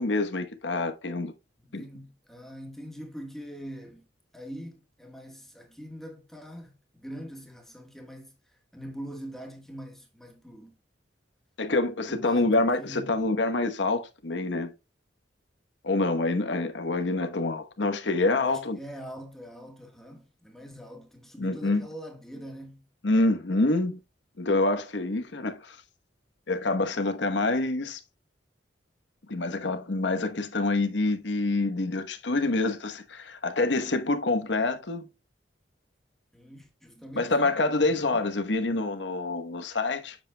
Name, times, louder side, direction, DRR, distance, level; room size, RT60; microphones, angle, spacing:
voice 1, 0.0-1.3 1.7-1.8 11.6-14.7 15.8-18.8 21.4-21.9 23.0-24.0 24.4-25.8 26.5-28.0 29.3-35.1 37.2-40.2, left 2 dB, 75° left, 1.1 m, -26 dB
voice 2, 1.6-4.0 4.3-10.7 12.1-13.2 18.4-22.8 36.3-38.2, equal, ahead, 1.4 m, -43 dB
8.4 x 7.3 x 2.2 m
head